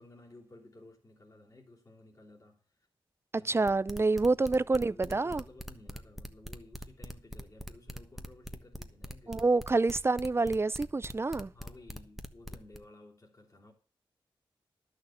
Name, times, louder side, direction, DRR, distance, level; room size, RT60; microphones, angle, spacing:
voice 1, 0.0-2.9 3.3-3.7 4.6-9.4 11.5-13.7, left 2 dB, 35° left, 3.2 m, -55 dB
voice 2, 3.5-5.4 9.3-11.5, right 3 dB, 25° right, 0.4 m, -27 dB
sound 1, 3.7-12.8, equal, ahead, 1.2 m, -42 dB
11.0 x 6.6 x 7.1 m
cardioid pair, 55°, 9 cm